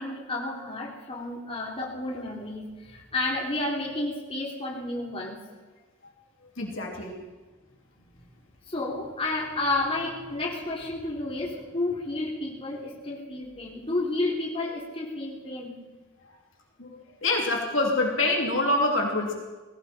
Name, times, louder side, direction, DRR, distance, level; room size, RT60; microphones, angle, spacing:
voice 1, 0.0-5.4 8.7-15.7, left 2 dB, 25° left, -3 dB, 3.5 m, -31 dB
voice 2, 6.6-7.1 16.8-19.3, left 2 dB, 65° left, -1 dB, 3.2 m, -26 dB
19.0 x 17.0 x 4.5 m, 1.3 s
head